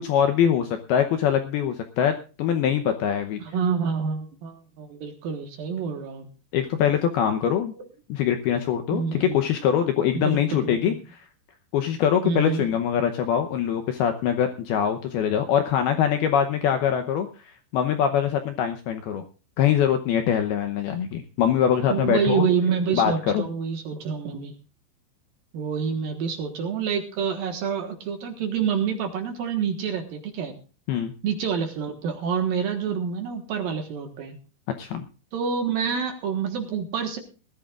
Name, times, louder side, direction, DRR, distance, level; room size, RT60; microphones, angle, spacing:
voice 1, 0.0-3.4 6.5-7.7 8.1-10.9 11.7-17.3 17.7-19.2 19.6-22.5 22.9-23.5 30.9-31.1 34.8-35.0, left 9 dB, 75° left, 7 dB, 2.4 m, -23 dB
voice 2, 3.4-6.3 8.9-9.4 10.1-11.0 12.2-12.6 21.9-24.5 25.5-30.6 31.2-34.4 35.3-37.2, right 6 dB, 60° right, 5 dB, 2.7 m, -27 dB
20.5 x 14.0 x 2.4 m, 0.35 s
omnidirectional pair, 5.4 m